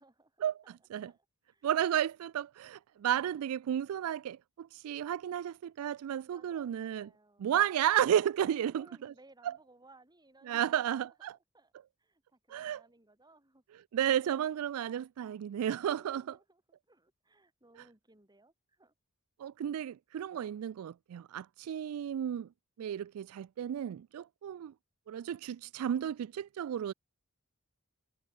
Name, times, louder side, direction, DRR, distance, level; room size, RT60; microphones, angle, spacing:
voice 1, 0.0-0.8 1.0-1.7 6.2-7.5 8.6-11.7 12.0-13.6 14.2-14.3 15.8-18.9, right 2 dB, 20° right, 4.9 m, -62 dB
voice 2, 1.6-7.1 7.4-9.1 9.4-9.5 10.5-11.4 12.5-12.8 13.9-16.4 19.4-22.5 22.8-24.7 25.1-26.9, right 10 dB, 80° right, 0.3 m, -33 dB
head